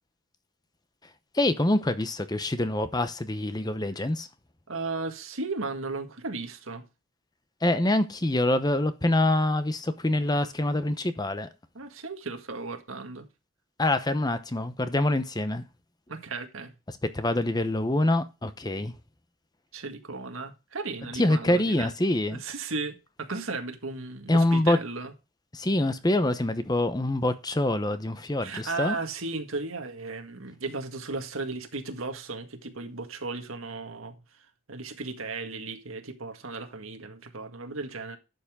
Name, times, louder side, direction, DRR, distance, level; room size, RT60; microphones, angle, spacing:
voice 1, 1.3-4.3 7.6-11.5 13.8-15.6 17.1-18.9 21.1-22.4 24.3-24.8 25.5-29.0, left 1 dB, 20° left, 0.8 m, -25 dB
voice 2, 4.7-6.9 11.8-13.3 16.1-16.7 19.7-21.9 22.3-25.1 28.4-34.2 34.7-38.2, right 3 dB, 85° right, 1.8 m, -35 dB
12.0 x 7.0 x 3.6 m
head